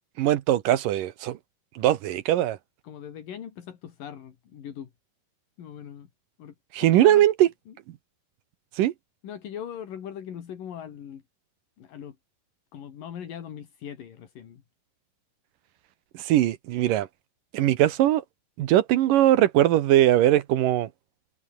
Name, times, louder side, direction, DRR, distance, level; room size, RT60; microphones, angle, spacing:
voice 1, 0.2-1.4 1.8-2.6 6.7-7.5 8.8-8.9 16.2-17.1 17.5-18.2 18.6-20.9, right 13 dB, 75° right, 2.7 m, -20 dB
voice 2, 2.8-4.9 5.6-6.1 6.4-7.2 7.7-7.8 9.2-11.2 11.8-12.2 12.7-14.6, left 9 dB, 75° left, 4.1 m, -40 dB
omnidirectional pair, 3.9 m